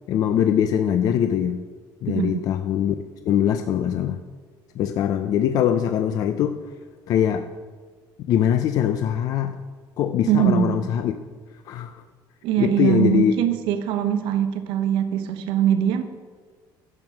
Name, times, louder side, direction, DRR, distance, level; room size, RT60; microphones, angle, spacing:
voice 1, 0.1-1.6 2.0-2.9 3.3-4.2 4.8-6.6 7.1-7.5 8.2-9.6 10.0-11.1 11.7-11.9 12.6-13.3, left 9 dB, 45° left, 8 dB, 0.5 m, -22 dB
voice 2, 2.1-2.4 10.3-10.8 12.4-16.0, right 10 dB, 70° right, 8 dB, 1.0 m, -22 dB
11.0 x 7.8 x 6.0 m, 1.5 s
cardioid pair, 175°, 9 cm